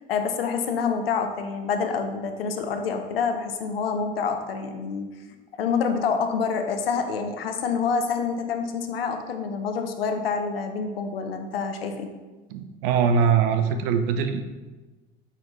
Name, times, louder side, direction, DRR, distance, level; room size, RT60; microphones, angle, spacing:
voice 1, 0.1-5.1 5.5-12.1, left 5 dB, 85° left, 6 dB, 0.7 m, -27 dB
voice 2, 12.5-14.4, right 6 dB, 70° right, 9 dB, 0.7 m, -22 dB
5.7 x 4.3 x 4.1 m, 1.2 s
hypercardioid pair, 65°, 29 cm